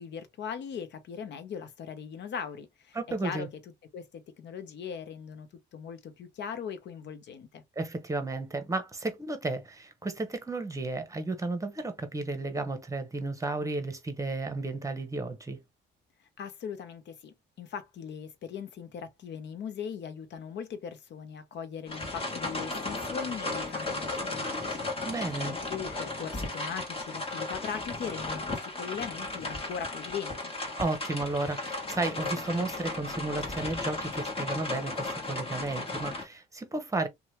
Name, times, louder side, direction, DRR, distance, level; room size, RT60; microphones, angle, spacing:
voice 1, 0.0-3.0 3.2-3.5 3.9-7.6 16.4-24.9 25.4-30.5, left 7 dB, 60° left, 0.8 m, -39 dB
voice 2, 2.9-3.5 7.8-15.6 25.0-25.5 30.8-37.1, right 2 dB, 15° right, 0.9 m, -33 dB
sound 1, 21.9-36.2, left 2 dB, 30° left, 1.3 m, -35 dB
2.8 x 2.3 x 3.1 m
cardioid pair, 90°, 20 cm